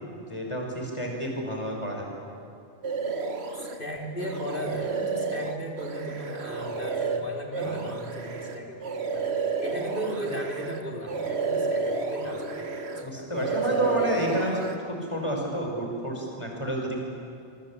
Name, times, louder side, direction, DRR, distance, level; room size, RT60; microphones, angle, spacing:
voice 1, 0.2-2.1 13.0-17.0, equal, 25° left, 0 dB, 5.9 m, -30 dB
sound 1, 2.8-3.8 4.2-10.8 11.1-13.1 13.3-14.8, right 4 dB, 70° right, 1.7 m, -31 dB
voice 2, 3.8-8.8 9.1-12.7 13.1-14.1, equal, 50° left, -1 dB, 4.1 m, -37 dB
27.0 x 23.5 x 8.8 m, 2.5 s
omnidirectional pair, 1.1 m